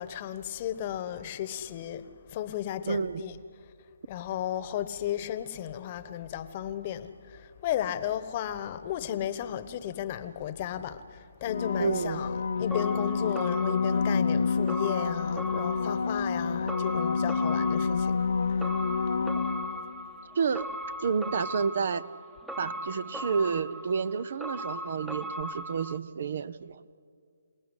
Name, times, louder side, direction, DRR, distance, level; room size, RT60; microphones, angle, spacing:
voice 1, 0.0-3.4 4.1-11.0 11.4-18.2, left 11 dB, 35° left, 1.2 m, -34 dB
voice 2, 2.9-3.3 11.8-12.2 16.4-16.6 19.4-19.5 20.3-20.7 21.0-22.1 22.6-26.8, right 5 dB, 55° right, 0.8 m, -30 dB
sound 1, 11.4-20.1 25.4-25.5, left 5 dB, 70° left, 0.8 m, -28 dB
sound 2, 12.7-26.0, equal, 5° right, 1.0 m, -39 dB
27.5 x 18.5 x 10.0 m
figure-of-eight pair, 145°, 0 cm